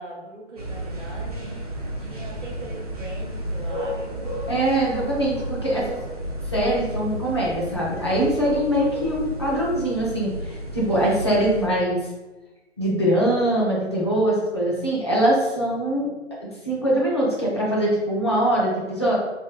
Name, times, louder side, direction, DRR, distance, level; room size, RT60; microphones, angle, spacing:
voice 1, 0.0-4.4, right 2 dB, 85° right, -3 dB, 0.9 m, -40 dB
sound 1, 0.6-11.7, equal, 35° right, 0.4 m, -32 dB
voice 2, 4.5-6.0 6.5-12.0 12.8-16.1 16.6-19.1, right 1 dB, 25° left, -5 dB, 0.5 m, -22 dB
2.8 x 2.6 x 2.5 m, 1.1 s
figure-of-eight pair, 155°, 36 cm